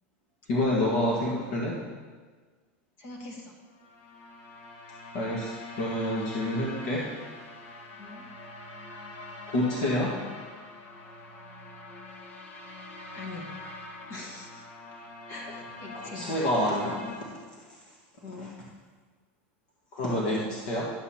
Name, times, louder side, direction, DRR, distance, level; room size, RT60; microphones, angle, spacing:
voice 1, 0.5-1.8 5.1-7.0 9.5-10.1 15.9-17.4 18.3-18.5 19.9-20.9, left 1 dB, 55° left, -4 dB, 1.5 m, -28 dB
voice 2, 3.0-3.5 8.0-8.3 13.1-13.5 14.1-14.6 15.3-16.5 18.2-18.5, left 3 dB, 35° left, 1 dB, 1.4 m, -42 dB
sound 1, 3.7-17.2, left 2 dB, 70° left, 1.7 m, -44 dB
11.0 x 8.1 x 2.9 m, 1.4 s
supercardioid pair, 170°, 7 cm